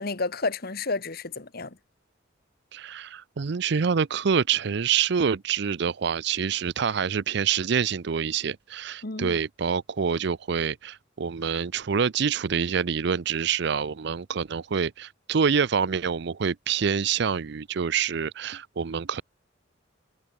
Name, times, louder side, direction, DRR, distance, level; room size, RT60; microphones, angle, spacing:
voice 1, 0.0-1.7 9.0-9.4, left 3 dB, 50° left, 1.5 m, -31 dB
voice 2, 2.7-19.2, right 6 dB, 60° right, 0.5 m, -26 dB
head